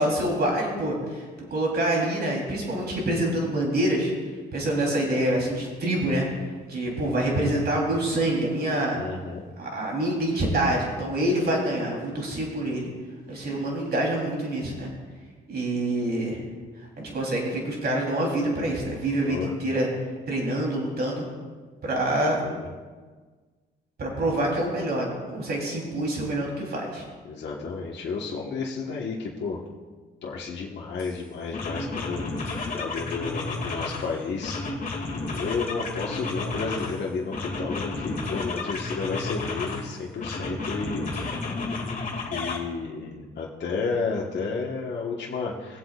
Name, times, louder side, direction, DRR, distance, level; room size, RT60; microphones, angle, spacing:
voice 1, 0.0-4.1 4.5-6.3 6.7-9.0 9.6-12.9 13.3-14.9 15.5-16.4 17.0-19.9 20.3-21.3 21.8-22.4 24.0-27.0, right 1 dB, 55° right, -1 dB, 3.5 m, -26 dB
voice 2, 8.9-9.4 19.2-19.5 22.4-22.7 27.2-29.6 30.2-32.2 32.7-34.6 35.3-41.1 42.3-45.8, left 4 dB, 60° left, -3 dB, 1.4 m, -32 dB
sound 1, 31.0-31.1 31.5-34.1 34.4-37.0 37.3-39.8 40.2-42.6, left 3 dB, 45° left, 2.3 m, -32 dB
19.5 x 7.8 x 2.4 m, 1.4 s
cardioid pair, 90°, 20 cm